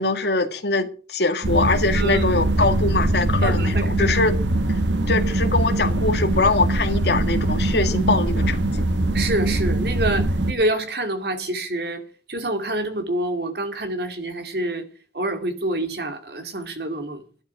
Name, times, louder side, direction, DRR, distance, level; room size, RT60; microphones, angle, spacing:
voice 1, 0.0-4.4 4.7-4.8 5.1-8.9, left 3 dB, 65° left, 1.8 m, -23 dB
sound 1, 1.4-10.5, right 1 dB, 85° right, 1.3 m, -22 dB
voice 2, 3.4-4.1 9.1-12.0 12.3-14.9 15.1-17.2, right 1 dB, 60° right, 2.4 m, -27 dB
12.0 x 10.5 x 5.9 m
head